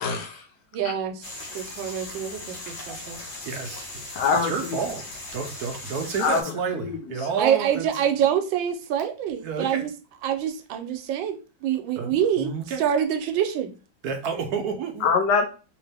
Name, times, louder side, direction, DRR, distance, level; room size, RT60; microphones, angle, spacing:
voice 1, 0.0-0.4 4.1-4.8 6.2-6.4 6.8-7.3 15.0-15.5, left 5 dB, 70° left, 4 dB, 1.3 m, -24 dB
voice 2, 0.7-3.2 7.4-9.9 10.2-12.5 12.8-13.7, right 9 dB, 85° right, 7 dB, 1.4 m, -26 dB
sound 1, 1.2-6.4, left 2 dB, 85° left, 1.7 m, -38 dB
voice 3, 3.4-3.8 4.4-5.0 5.3-7.9 9.4-9.9 12.0-12.8 14.0-15.1, right 6 dB, 70° right, 4 dB, 1.0 m, -30 dB
3.5 x 2.9 x 3.3 m, 0.34 s
omnidirectional pair, 2.0 m